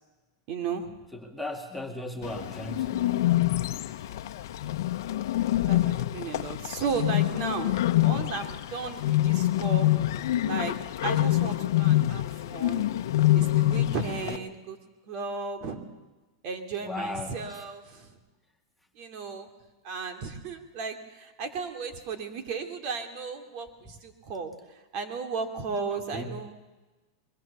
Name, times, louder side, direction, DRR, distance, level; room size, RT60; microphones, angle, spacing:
voice 1, 0.5-0.9 5.7-7.8 8.0-9.9 10.5-10.7 11.0-12.9 13.3-14.8 15.1-15.8 16.4-18.1 19.0-19.5 19.8-23.7 24.0-24.5 24.9-26.5, right 5 dB, 45° right, 7 dB, 2.9 m, -34 dB
voice 2, 1.1-3.3 14.2-14.4 16.8-17.6 26.1-26.4, left 1 dB, ahead, 1 dB, 2.1 m, -37 dB
Bird, 2.2-14.4, left 14 dB, 70° left, 1.1 m, -26 dB
23.5 x 22.5 x 7.0 m, 1.2 s
supercardioid pair, 140°, 2 cm